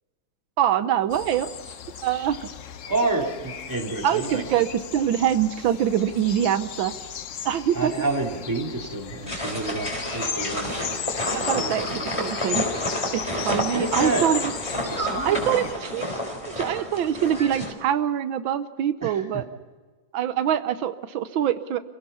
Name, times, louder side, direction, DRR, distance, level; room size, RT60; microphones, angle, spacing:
voice 1, 0.6-1.5 2.0-2.5 4.0-6.9 7.4-8.1 11.3-11.9 12.2-12.6 13.1-14.5 15.2-16.1 16.6-19.4 20.1-21.8, right 10 dB, 90° right, 12 dB, 1.6 m, -24 dB
sound 1, 1.1-15.7, left 8 dB, 55° left, 1.0 m, -36 dB
voice 2, 2.9-4.4 7.7-10.8 11.5-12.0 13.7-14.3 14.8-15.7 19.0-19.4, right 2 dB, 10° right, 1 dB, 2.9 m, -29 dB
sound 2, 9.3-17.7, equal, 15° left, 3.8 m, -30 dB
28.0 x 16.5 x 5.6 m, 1.4 s
omnidirectional pair, 2.1 m